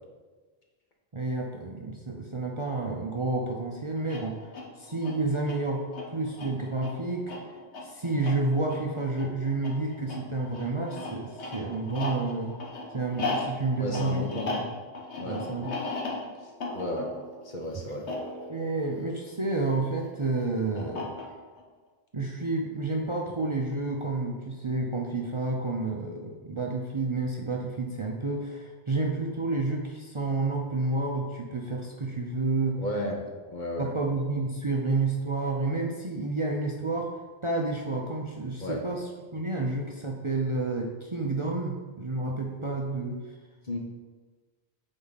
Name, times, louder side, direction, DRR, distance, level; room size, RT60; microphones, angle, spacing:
voice 1, 1.1-5.8 6.1-7.3 7.8-12.6 12.9-14.6 15.2-15.8 18.5-21.1 22.1-32.8 33.8-37.1 37.4-43.2, right 3 dB, 35° right, -1 dB, 0.7 m, -30 dB
sound 1, 4.0-19.7 20.8-21.6, left 2 dB, 90° left, 1.5 m, -37 dB
voice 2, 13.8-14.5 15.2-15.4 16.7-17.1 17.4-18.0 32.8-33.2 33.5-33.9 38.6-38.8 43.7-43.8, left 1 dB, 45° left, 0 dB, 1.2 m, -33 dB
8.9 x 4.4 x 4.1 m, 1.3 s
omnidirectional pair, 1.1 m